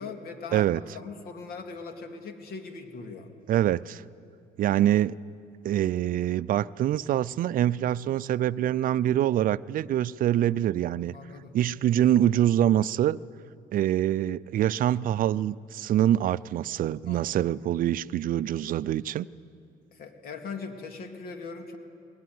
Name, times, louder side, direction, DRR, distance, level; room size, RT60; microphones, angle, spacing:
voice 1, 0.0-0.7 0.9-3.3 11.1-11.6 17.0-17.5 19.9-21.8, left 4 dB, 65° left, 2.5 m, -40 dB
voice 2, 3.5-4.0 4.6-5.2 5.6-11.1 11.5-13.2 13.7-19.3, right 12 dB, 55° right, 0.5 m, -25 dB
21.0 x 20.0 x 9.5 m
cardioid pair, 110°, 17 cm